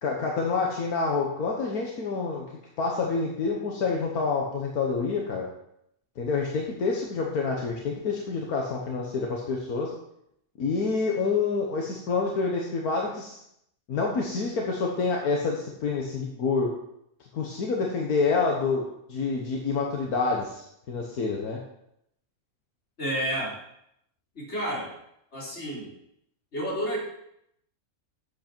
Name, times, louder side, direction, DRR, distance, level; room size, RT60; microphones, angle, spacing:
voice 1, 0.0-2.4 2.8-5.5 6.2-9.9 10.6-13.4 13.9-16.7 17.3-21.6, left 4 dB, 80° left, -1 dB, 1.7 m, -27 dB
voice 2, 23.0-23.6 24.3-24.9 25.3-25.9 26.5-27.0, equal, 50° left, -5 dB, 4.0 m, -30 dB
11.0 x 8.1 x 4.5 m, 0.77 s
omnidirectional pair, 1.6 m